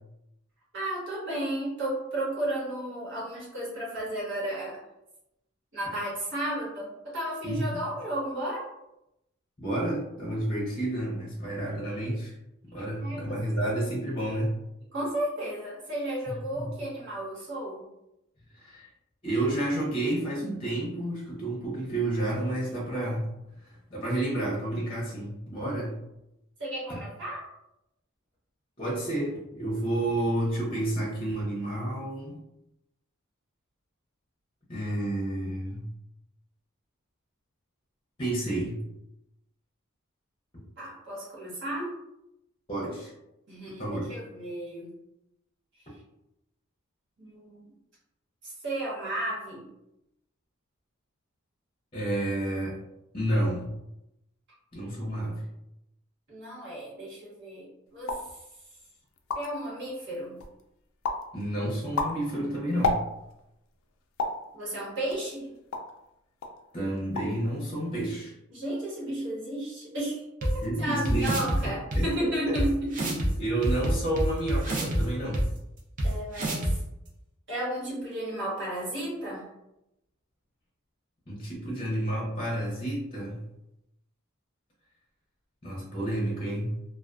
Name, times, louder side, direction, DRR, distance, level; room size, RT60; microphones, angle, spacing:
voice 1, 0.7-4.8 5.7-8.7 13.0-13.6 14.9-17.8 26.6-27.4 40.8-41.9 43.5-44.9 47.2-47.6 48.4-49.7 56.3-58.2 59.3-60.4 64.5-65.5 68.5-73.2 76.0-76.8 77.5-79.5, right 1 dB, 60° right, -6 dB, 1.2 m, -33 dB
voice 2, 9.6-12.3 12.6-14.5 16.3-16.7 18.5-18.9 19.2-23.3 23.6-26.0 26.9-27.0 28.8-32.4 34.7-35.9 38.2-38.8 42.7-43.1 43.8-44.1 51.9-52.8 53.1-53.7 54.7-55.4 61.3-63.0 66.7-68.3 70.6-71.4 71.6-72.5 73.4-75.5 81.3-83.4 85.6-86.7, right 1 dB, 25° left, -4 dB, 0.6 m, -30 dB
sound 1, 58.0-58.3 58.9-59.0 59.1-59.7 60.1-60.6 61.0-61.3 61.7-63.4 64.2-64.5 65.1-66.0 66.4-66.6 66.9-67.4 67.7-68.2, left 3 dB, 80° left, 0.4 m, -31 dB
sound 2, 70.4-70.5 71.0-71.6 71.9-72.0 72.5-72.6 72.9-73.3 73.6-75.0 75.3-75.4 76.0-76.1 76.3-76.7, right 1 dB, 40° right, 0.5 m, -27 dB
2.3 x 2.3 x 2.3 m, 0.87 s
head